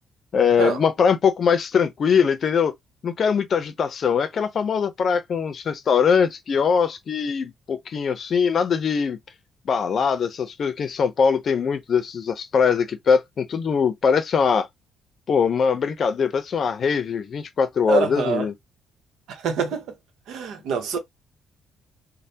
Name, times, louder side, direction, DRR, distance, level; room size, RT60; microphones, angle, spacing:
voice 1, 0.3-2.7 3.0-9.2 9.7-14.7 15.3-18.5, left 6 dB, 55° left, 0.6 m, -22 dB
voice 2, 17.9-18.5 19.3-19.8 20.3-21.0, right 6 dB, 80° right, 0.9 m, -25 dB
3.2 x 2.2 x 2.8 m
cardioid pair, 90°, 0 cm